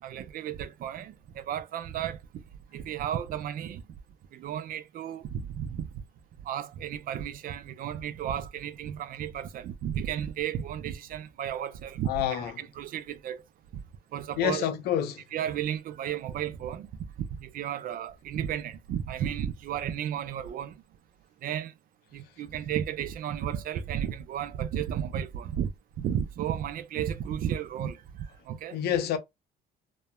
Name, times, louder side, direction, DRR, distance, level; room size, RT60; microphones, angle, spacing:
voice 1, 0.0-2.4 2.7-3.8 4.3-6.0 6.5-13.4 13.7-13.8 14.1-14.7 15.3-17.1 17.4-20.8 21.4-21.7 22.1-25.7 26.0-28.8, right 10 dB, 55° right, 0.5 m, -33 dB
voice 2, 12.1-12.5 14.4-15.2 28.7-29.2, left 10 dB, 70° left, 0.6 m, -27 dB
3.1 x 2.1 x 2.2 m
cardioid pair, 110°, 17 cm